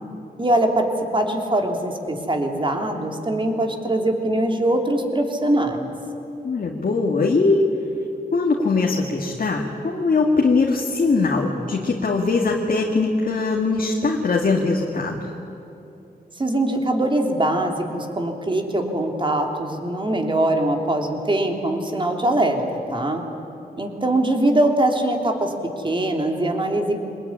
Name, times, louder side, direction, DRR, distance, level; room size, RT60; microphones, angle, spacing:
voice 1, 0.4-0.9 1.1-5.9 16.4-22.6 22.9-23.2 23.8-25.5 25.8-27.0, right 1 dB, 30° right, 3 dB, 3.4 m, -22 dB
voice 2, 6.4-7.7 8.3-15.3, left 3 dB, 60° left, 0 dB, 2.2 m, -21 dB
24.0 x 20.0 x 9.8 m, 2.8 s
cardioid pair, 70°, 16 cm